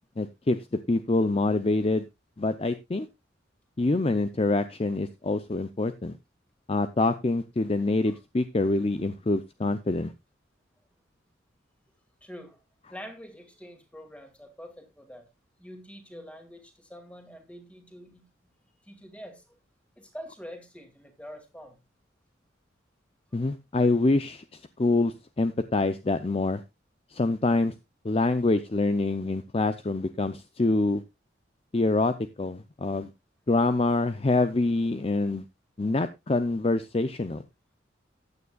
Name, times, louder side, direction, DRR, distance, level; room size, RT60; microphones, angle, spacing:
voice 1, 0.2-2.0 2.4-3.1 3.8-6.1 6.7-10.1 23.3-26.6 27.1-27.7 28.0-31.0 31.7-33.1 33.5-35.4 35.8-37.4, left 2 dB, 30° left, 11 dB, 0.5 m, -26 dB
voice 2, 12.2-12.6 12.9-15.3 15.6-18.2 18.8-19.6 20.0-21.8, equal, 5° left, 5 dB, 2.2 m, -45 dB
15.0 x 9.5 x 2.3 m, 0.22 s
head